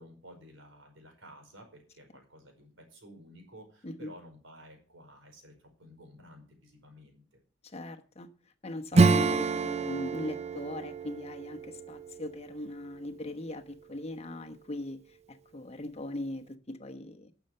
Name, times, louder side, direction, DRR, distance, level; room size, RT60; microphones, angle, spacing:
voice 1, 0.0-7.4, equal, 75° right, 5.0 m, -53 dB
voice 2, 7.6-8.3 8.6-17.3, left 1 dB, 35° left, 1.1 m, -40 dB
Acoustic guitar / Strum, 8.9-13.2, right 3 dB, 35° right, 0.6 m, -28 dB
12.5 x 7.1 x 7.8 m
head